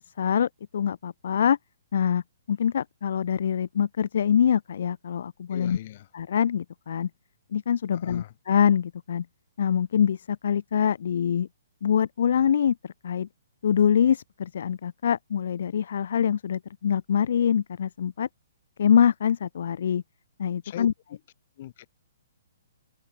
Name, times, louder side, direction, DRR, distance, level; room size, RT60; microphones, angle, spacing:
voice 1, 0.2-1.6 1.9-2.2 2.5-5.8 6.1-7.1 7.5-9.3 9.6-11.5 11.8-13.3 13.6-18.3 18.8-20.0 20.4-20.9, left 8 dB, 65° left, 0.4 m, -24 dB
voice 2, 5.5-6.1 7.9-8.3 20.6-21.2 21.6-21.9, left 13 dB, 45° left, 2.7 m, -40 dB
hypercardioid pair, 145°, 0 cm